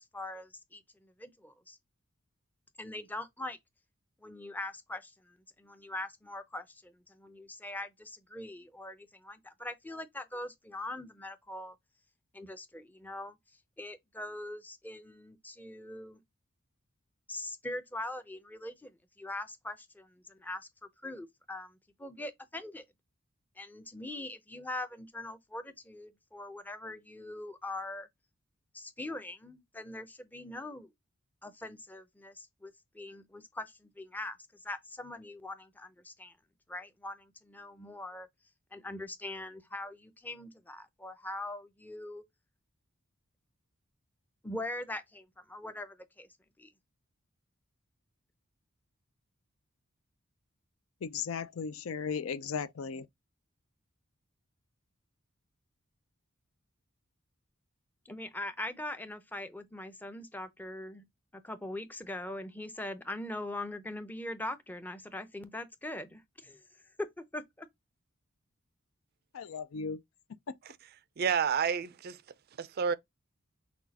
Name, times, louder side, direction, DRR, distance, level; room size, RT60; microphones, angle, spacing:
voice 1, 0.0-1.8 2.8-3.6 4.2-11.8 12.3-13.4 13.8-16.2 17.3-18.9 19.2-20.7 21.0-22.8 23.6-28.1 28.7-30.9 31.4-36.3 36.7-38.3 38.7-42.2 44.4-46.3 46.6-46.7 58.1-61.0 61.3-66.6 67.0-67.7, left 1 dB, 10° left, 0.5 m, -42 dB
voice 2, 51.0-53.1 69.3-70.0, left 6 dB, 75° left, 0.4 m, -36 dB
voice 3, 71.2-72.2 72.6-72.9, right 7 dB, 45° right, 0.4 m, -29 dB
6.0 x 2.3 x 2.7 m
head